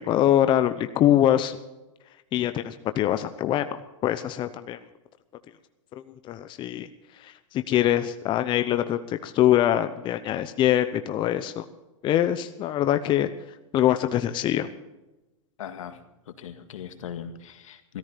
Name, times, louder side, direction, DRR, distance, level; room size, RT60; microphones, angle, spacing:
voice 1, 0.0-1.6 2.3-4.8 6.3-6.9 7.2-7.3 7.7-11.6 12.0-13.3 13.7-14.7, left 12 dB, 30° left, 10 dB, 0.8 m, -23 dB
voice 2, 15.6-16.0 16.4-18.0, left 8 dB, 80° left, 8 dB, 1.9 m, -39 dB
16.0 x 14.0 x 5.2 m, 1.0 s
hypercardioid pair, 130°, 17 cm